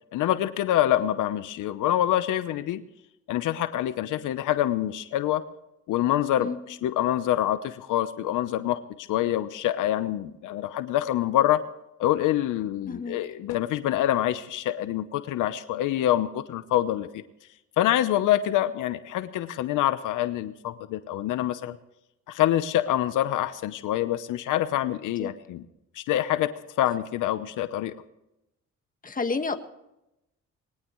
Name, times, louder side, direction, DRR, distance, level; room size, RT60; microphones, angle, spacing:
voice 1, 0.1-2.8 3.3-5.4 5.9-11.6 12.0-17.2 17.8-21.8 22.3-25.6 25.9-26.5 26.8-27.9, left 13 dB, 85° left, 12 dB, 0.9 m, -26 dB
voice 2, 12.9-13.2 25.2-25.3 29.0-29.6, left 4 dB, 25° left, 7 dB, 1.7 m, -30 dB
21.5 x 18.5 x 3.2 m, 0.87 s
cardioid pair, 90°, 30 cm